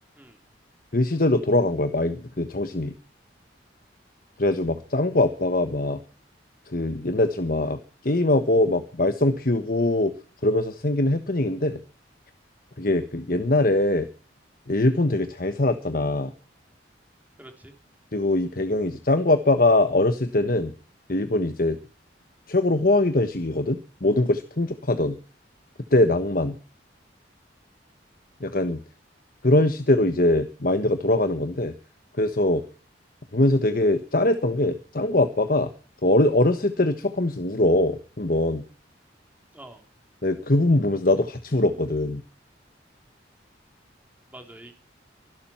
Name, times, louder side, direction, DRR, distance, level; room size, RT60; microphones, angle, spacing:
voice 1, 0.9-2.9 4.4-6.0 6.7-10.1 10.4-11.8 12.8-14.1 14.7-16.3 18.1-20.7 21.1-21.8 22.5-25.2 25.9-26.6 28.4-28.8 29.4-31.7 32.2-32.6 33.3-35.7 36.0-38.6 40.2-42.2, left 2 dB, 50° left, 9 dB, 1.4 m, -22 dB
voice 2, 17.4-17.7 39.5-39.8 44.3-44.7, right 1 dB, 10° right, 5 dB, 3.5 m, -45 dB
25.0 x 12.0 x 4.5 m, 0.38 s
head